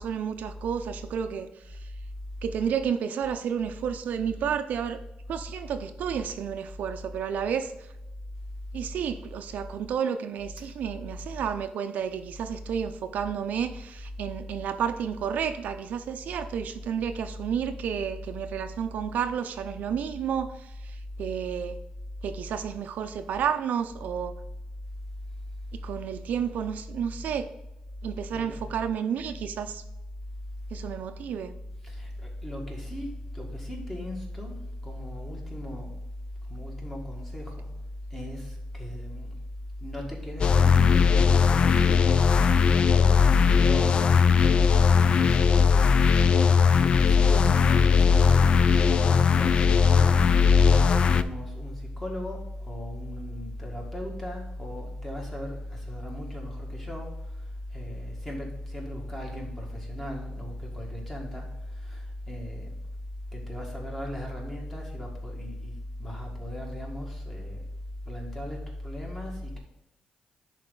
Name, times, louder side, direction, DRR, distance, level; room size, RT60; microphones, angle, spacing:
voice 1, 0.0-1.8 2.4-5.0 5.3-7.7 8.7-21.8 22.2-24.4 25.8-27.5 28.0-29.8 30.7-31.5, right 8 dB, 70° right, 8 dB, 0.5 m, -31 dB
voice 2, 31.8-36.0 36.5-37.7 38.1-39.3 39.8-50.2 50.7-57.1 57.7-61.4 61.8-62.8 63.3-67.6 68.1-68.6 68.8-69.6, left 1 dB, 10° left, -1 dB, 1.8 m, -36 dB
sound 1, 40.4-51.2, left 6 dB, 35° left, 0.3 m, -19 dB
10.5 x 4.2 x 3.8 m, 0.90 s
wide cardioid pair, 165°, 3 cm